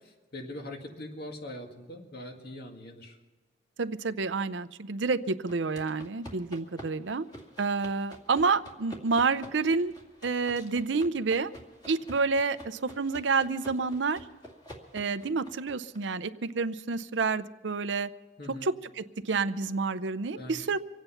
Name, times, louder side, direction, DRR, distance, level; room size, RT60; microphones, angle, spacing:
voice 1, 0.3-3.2 18.4-18.7 20.4-20.8, left 1 dB, 55° left, 3 dB, 2.0 m, -42 dB
voice 2, 3.8-7.3 7.6-9.9 10.2-11.5 11.9-14.2 14.9-18.1 18.5-20.8, right 4 dB, 70° right, 12 dB, 0.7 m, -29 dB
sound 1, 5.5-16.0, equal, 20° left, 2.3 m, -49 dB
25.0 x 9.0 x 5.7 m, 1.2 s
head